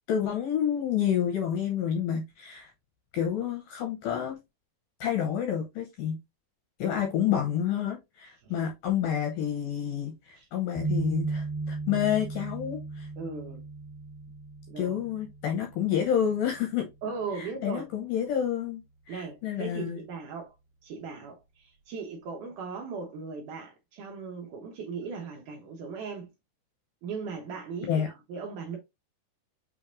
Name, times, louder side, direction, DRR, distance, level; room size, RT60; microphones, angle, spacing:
voice 1, 0.1-2.7 3.1-4.4 5.0-6.2 6.8-13.1 14.8-16.9 17.4-18.8 19.1-20.0 27.9-28.1, left 9 dB, 75° left, 2.0 m, -29 dB
sound 1, 10.7-17.8, right 3 dB, 40° right, 1.4 m, -36 dB
voice 2, 13.2-13.6 14.7-15.0 17.0-17.8 19.1-20.6 20.8-26.3 27.0-28.8, right 5 dB, 90° right, 1.8 m, -38 dB
6.2 x 3.2 x 2.5 m
omnidirectional pair, 4.8 m